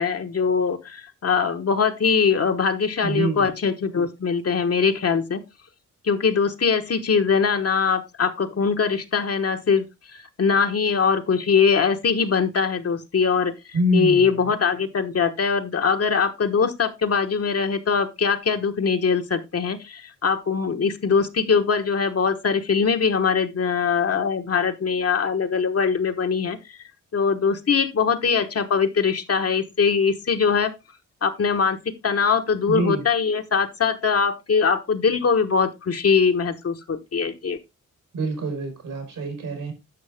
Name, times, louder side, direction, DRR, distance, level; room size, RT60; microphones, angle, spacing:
voice 1, 0.0-5.4 6.0-9.8 10.1-13.5 13.9-26.8 27.1-30.8 31.2-37.6, left 5 dB, 50° left, 1.3 m, -22 dB
voice 2, 3.0-3.5 13.7-14.3 32.7-33.0 38.1-39.7, right 1 dB, 80° right, 4.6 m, -25 dB
10.5 x 6.3 x 3.5 m
cardioid pair, 90°, 31 cm